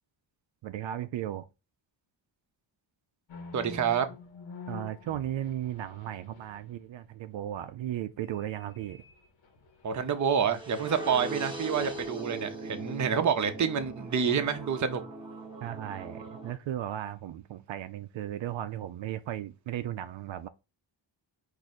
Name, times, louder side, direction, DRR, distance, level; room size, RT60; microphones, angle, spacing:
voice 1, 0.6-1.5 4.7-9.0 15.6-20.5, right 12 dB, 75° right, 0.5 m, -36 dB
sound 1, 3.3-6.9 8.2-10.5 11.0-11.2 11.8-12.0, left 4 dB, 80° left, 1.2 m, -47 dB
voice 2, 3.5-4.1 9.8-15.0, right 7 dB, 40° right, 0.6 m, -28 dB
sound 2, 10.5-16.5, right 2 dB, 10° right, 0.9 m, -40 dB
4.9 x 2.7 x 4.1 m
wide cardioid pair, 150°, 45 cm